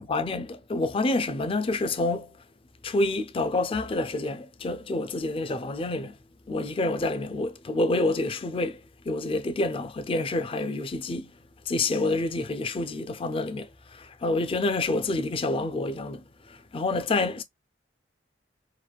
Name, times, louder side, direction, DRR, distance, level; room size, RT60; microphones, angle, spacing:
voice 1, 0.0-2.3 2.8-6.1 6.5-8.8 9.1-11.3 11.7-17.4, left 2 dB, 30° left, 0.4 m, -28 dB
3.1 x 2.2 x 2.3 m
head